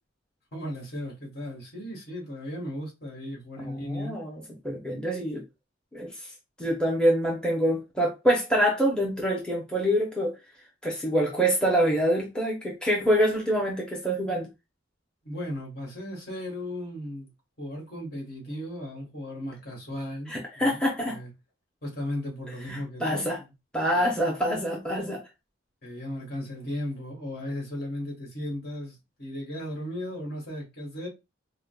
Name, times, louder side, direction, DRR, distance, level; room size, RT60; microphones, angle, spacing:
voice 1, 0.5-4.1 15.2-17.3 17.6-20.8 21.1-21.3 21.8-23.5 23.9-24.1 25.8-31.1, left 1 dB, 55° left, 1.6 m, -36 dB
voice 2, 3.6-5.4 5.9-6.1 6.6-10.3 10.8-14.5 20.3-21.2 22.7-23.4 23.7-25.2, equal, 5° left, 0.7 m, -26 dB
4.9 x 2.2 x 2.3 m
head